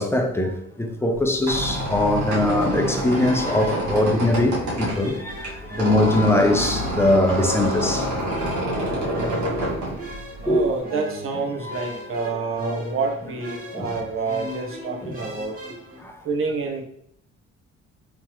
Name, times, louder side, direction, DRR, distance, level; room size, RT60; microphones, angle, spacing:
voice 1, 0.0-8.1 10.5-10.6 11.6-11.8 13.7-13.9 15.0-15.1 16.0-16.1, left 1 dB, 10° left, 0.6 m, -22 dB
Squeak, 1.2-10.8, right 1 dB, 70° right, 1.5 m, -27 dB
sound 1, 2.3-16.0, equal, 30° right, 1.2 m, -37 dB
voice 2, 10.4-15.5 16.2-16.8, right 4 dB, 45° right, 0.9 m, -28 dB
3.6 x 3.0 x 3.0 m
cardioid pair, 90°, 30 cm